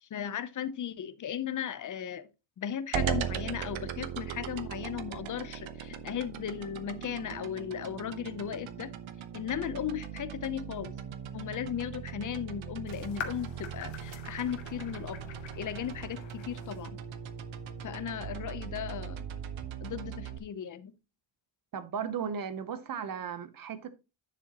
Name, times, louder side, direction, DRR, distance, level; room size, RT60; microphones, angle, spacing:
voice 1, 0.0-2.3 2.6-8.9 9.3-10.9 11.3-15.3 15.6-17.0 17.8-19.3 19.8-20.9, left 9 dB, 40° left, 0.6 m, -36 dB
sound 1, 2.9-20.4, right 9 dB, 75° right, 1.0 m, -39 dB
sound 2, 12.9-16.9, left 7 dB, 75° left, 1.6 m, -45 dB
voice 2, 21.7-23.9, right 7 dB, 45° right, 0.8 m, -36 dB
10.0 x 7.2 x 2.9 m
wide cardioid pair, 180°, 46 cm